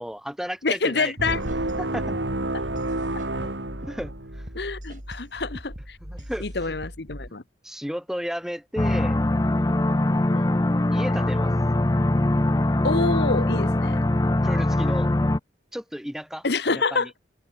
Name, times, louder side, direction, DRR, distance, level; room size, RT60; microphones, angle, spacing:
voice 1, 0.0-1.1 1.8-2.1 2.7-2.8 3.4-3.5 3.9-4.1 6.0-6.5 7.6-9.2 10.9-11.5 14.4-15.1 15.7-17.1, equal, ahead, 3.3 m, -33 dB
voice 2, 0.6-1.4 4.5-6.0 6.4-7.4 10.1-10.5 12.8-14.0 16.4-17.1, left 3 dB, 60° left, 1.1 m, -27 dB
sound 1, 1.2-4.5, right 1 dB, 75° right, 3.3 m, -29 dB
sound 2, 1.4-7.3, equal, 40° right, 6.7 m, -40 dB
sound 3, 8.8-15.4, left 1 dB, 20° left, 0.5 m, -22 dB
head